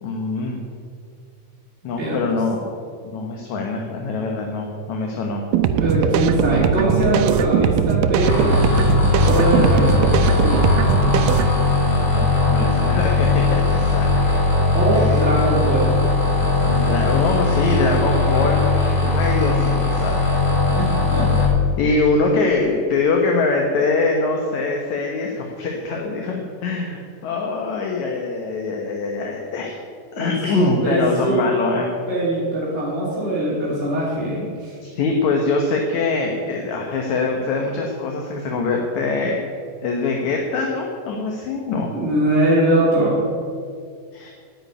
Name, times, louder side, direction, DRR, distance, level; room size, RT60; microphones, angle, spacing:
voice 1, 0.0-0.6 1.8-2.7 3.0-5.4 12.0-14.3 14.9-15.2 16.6-20.2 21.8-29.8 30.1-31.9 34.8-39.4 39.8-41.9 44.1-44.3, left 3 dB, 65° left, 1 dB, 2.2 m, -23 dB
sound 1, 5.5-11.5, right 8 dB, 80° right, 2.3 m, -20 dB
voice 2, 5.8-8.5 9.2-10.2 14.7-15.9 20.8-21.3 30.2-31.4 32.1-34.7 41.9-43.2, right 1 dB, 20° right, -8 dB, 2.6 m, -21 dB
sound 2, 8.2-21.5, left 3 dB, 5° left, 3.7 m, -19 dB
9.8 x 9.3 x 9.6 m, 2.1 s
omnidirectional pair, 4.2 m